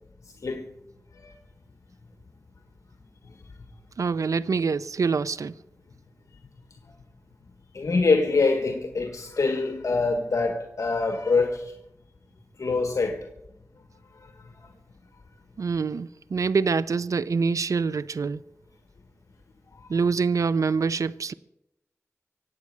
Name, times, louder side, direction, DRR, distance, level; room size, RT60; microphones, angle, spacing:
voice 1, 4.0-5.5 15.6-18.4 19.9-21.3, right 5 dB, 80° right, 0.5 m, -25 dB
voice 2, 7.7-11.7 12.6-13.3, left 3 dB, 75° left, 1.5 m, -24 dB
24.0 x 8.4 x 6.6 m
wide cardioid pair, 65°, 5 cm